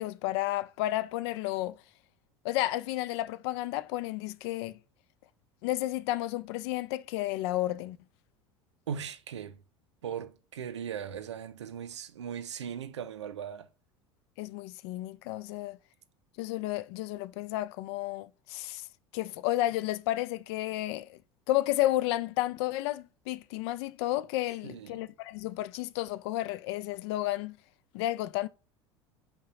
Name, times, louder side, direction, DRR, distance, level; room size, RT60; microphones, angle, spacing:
voice 1, 0.0-1.8 2.4-4.8 5.6-8.0 14.4-15.8 16.4-18.9 19.1-21.2 21.5-27.6 27.9-28.5, left 16 dB, 65° left, 0.4 m, -32 dB
voice 2, 8.9-9.6 10.0-13.7 24.6-25.1, right 8 dB, 90° right, 0.5 m, -38 dB
5.5 x 2.3 x 3.9 m
hypercardioid pair, 80°, 15 cm